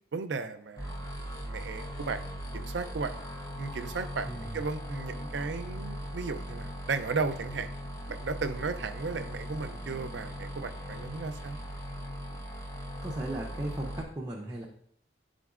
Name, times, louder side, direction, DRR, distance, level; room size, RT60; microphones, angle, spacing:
voice 1, 0.1-0.9 1.4-2.2 2.5-3.2 3.6-7.7 8.1-11.6, right 4 dB, 80° right, 10 dB, 0.5 m, -35 dB
sound 1, 0.8-14.0, equal, 20° left, 0.8 m, -39 dB
voice 2, 4.3-4.6 13.0-14.7, right 1 dB, 20° right, -2 dB, 0.6 m, -36 dB
10.5 x 3.8 x 2.4 m, 0.65 s
head